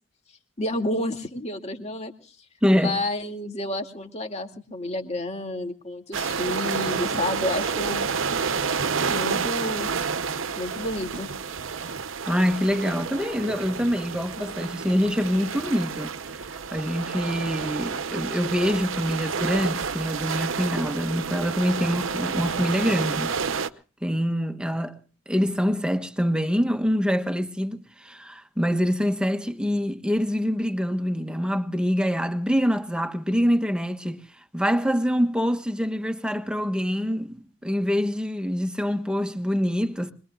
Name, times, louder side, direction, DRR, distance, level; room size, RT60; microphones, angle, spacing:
voice 1, 0.6-2.3 2.7-8.1 9.1-9.9 10.5-11.3, left 1 dB, 35° left, 2.4 m, -30 dB
voice 2, 2.6-3.0 12.3-16.4 16.7-23.4 24.0-25.0 25.3-34.2 34.5-37.4 37.6-40.1, equal, 5° right, 1.2 m, -25 dB
sound 1, 6.1-23.7, right 5 dB, 85° right, 0.9 m, -29 dB
25.5 x 21.5 x 2.4 m
head